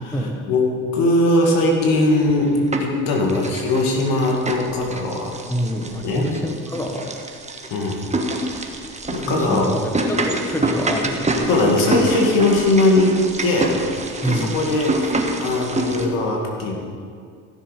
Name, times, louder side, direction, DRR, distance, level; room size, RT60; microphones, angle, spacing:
voice 1, 0.5-5.3 6.0-6.3 7.7-8.0 9.1-9.7 11.5-13.2 13.4-13.8 14.2-16.8, left 2 dB, 70° left, 0 dB, 2.3 m, -20 dB
sound 1, 2.1-3.0 3.3-16.1, right 2 dB, 20° right, 1.3 m, -26 dB
voice 2, 5.5-7.1 9.3-11.5 14.2-14.6, equal, 5° left, 2 dB, 1.4 m, -26 dB
15.5 x 6.9 x 5.1 m, 2.2 s
supercardioid pair, 80°, 35 cm